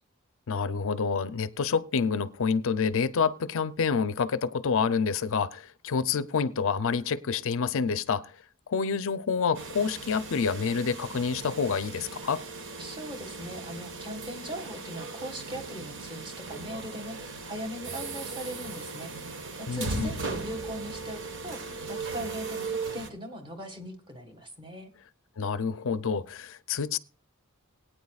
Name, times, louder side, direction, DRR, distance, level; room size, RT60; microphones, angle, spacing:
voice 1, 0.5-8.3 8.7-12.4 19.7-20.1 25.4-27.0, left 5 dB, 65° left, 0.5 m, -28 dB
sound 1, 9.5-23.1, right 4 dB, 60° right, 1.3 m, -38 dB
voice 2, 12.8-24.9, equal, 25° right, 1.7 m, -40 dB
21.5 x 9.0 x 2.4 m
head